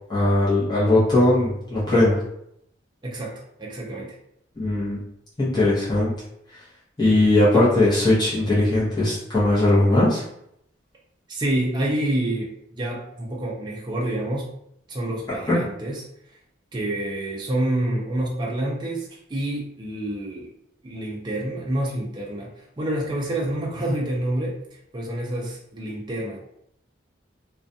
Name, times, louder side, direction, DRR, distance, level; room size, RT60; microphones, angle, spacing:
voice 1, 0.1-2.1 4.6-5.0 5.4-6.1 7.0-10.2 15.5-15.6, left 1 dB, 20° left, -9 dB, 0.7 m, -19 dB
voice 2, 3.0-4.2 7.5-7.6 11.3-12.5 12.8-14.5 14.9-16.0 16.7-20.5 20.8-24.6 24.9-26.4, right 1 dB, 25° right, -3 dB, 0.4 m, -28 dB
2.4 x 2.2 x 2.6 m, 0.75 s
head